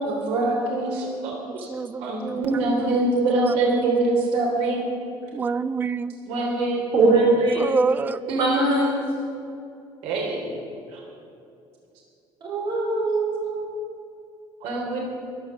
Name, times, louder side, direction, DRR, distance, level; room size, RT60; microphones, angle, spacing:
voice 1, 0.0-1.7 2.0-4.8 6.3-6.8 8.3-8.9 10.0-10.4 10.9-11.0 14.6-15.0, right 2 dB, 80° right, -1 dB, 3.4 m, -24 dB
voice 2, 1.5-4.0 5.3-6.1 7.6-8.2, right 5 dB, 20° right, 15 dB, 0.4 m, -28 dB
voice 3, 6.9-7.6 8.4-8.8 12.5-13.6, right 3 dB, 50° right, 0 dB, 4.1 m, -21 dB
14.0 x 11.0 x 7.1 m, 2.6 s
cardioid pair, 165°, 10 cm